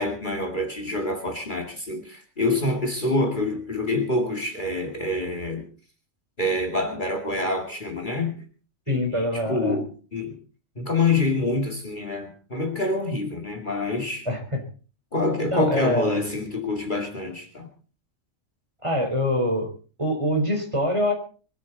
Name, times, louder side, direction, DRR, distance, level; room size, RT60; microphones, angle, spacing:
voice 1, 0.0-5.7 6.4-8.4 8.9-10.4 10.8-14.2 15.1-17.7, left 2 dB, 35° left, 2.5 m, -26 dB
voice 2, 8.9-9.8 14.3-14.6 15.5-16.2 18.8-19.7 20.0-21.1, left 1 dB, 20° right, 4.4 m, -24 dB
23.0 x 13.0 x 4.1 m
omnidirectional pair, 1.4 m